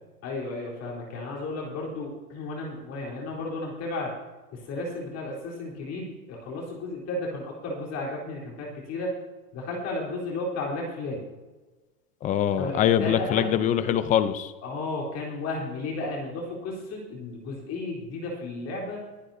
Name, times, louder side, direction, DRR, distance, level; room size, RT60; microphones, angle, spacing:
voice 1, 0.2-4.2 4.5-9.1 9.5-11.2 12.5-13.5 14.6-19.0, left 2 dB, 35° left, -2 dB, 3.9 m, -33 dB
voice 2, 12.2-14.5, left 10 dB, 15° left, 13 dB, 0.6 m, -23 dB
23.0 x 10.5 x 2.8 m, 1.2 s
hypercardioid pair, 140°, 46 cm